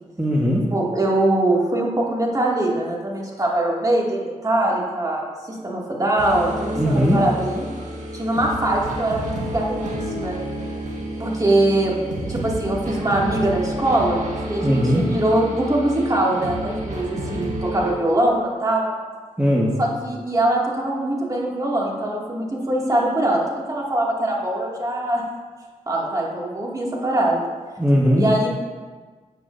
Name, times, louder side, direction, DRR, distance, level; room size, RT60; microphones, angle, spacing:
voice 1, 0.2-0.7 6.8-7.2 14.6-15.0 19.4-19.7 27.8-28.2, equal, 10° right, -4 dB, 1.4 m, -18 dB
voice 2, 0.7-7.7 8.1-10.4 11.2-12.0 12.3-18.9 19.8-23.4 23.7-25.2 25.9-27.4 28.2-28.5, right 1 dB, 30° right, -3 dB, 2.3 m, -22 dB
sound 1, 6.2-17.9, right 1 dB, 70° right, 1.6 m, -30 dB
12.0 x 8.2 x 2.7 m, 1.4 s
cardioid pair, 60°, 13 cm